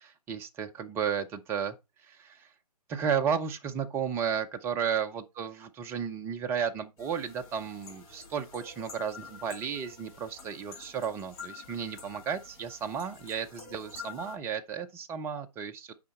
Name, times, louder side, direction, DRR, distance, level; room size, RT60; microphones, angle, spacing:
voice 1, 0.0-1.8 2.0-2.5 2.9-15.9, right 7 dB, 10° right, 0.5 m, -33 dB
sound 1, 7.0-14.3, left 5 dB, 35° left, 2.9 m, -48 dB
8.4 x 5.6 x 4.0 m
figure-of-eight pair, 135°, 20 cm